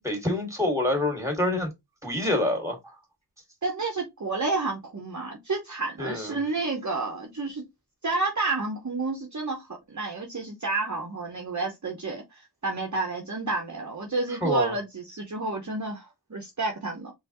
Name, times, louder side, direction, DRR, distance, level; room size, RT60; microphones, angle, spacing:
voice 1, 0.0-1.7 2.0-2.8 6.0-6.4 14.4-14.7, left 1 dB, 5° right, 2.1 m, -26 dB
voice 2, 3.6-7.6 8.0-17.1, right 3 dB, 45° right, 1.0 m, -30 dB
4.3 x 3.6 x 3.0 m
wide cardioid pair, 60°, 40 cm